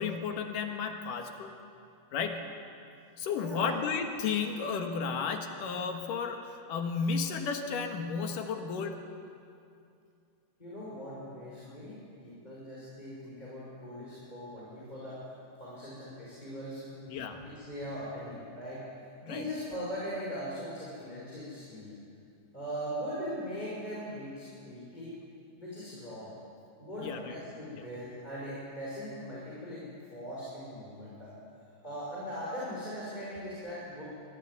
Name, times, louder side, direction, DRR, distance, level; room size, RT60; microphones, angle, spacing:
voice 1, 0.0-1.5 2.1-2.4 3.2-9.0 17.1-17.4 19.2-19.4 27.0-27.3, left 5 dB, 70° left, 5 dB, 3.0 m, -33 dB
voice 2, 3.3-3.7 10.6-15.2 15.6-18.8 19.2-22.0 22.5-25.2 25.6-26.3 26.8-29.8 30.1-31.3 31.8-34.0, equal, 10° left, -8 dB, 5.3 m, -40 dB
23.5 x 15.0 x 9.5 m, 2.5 s
omnidirectional pair, 4.0 m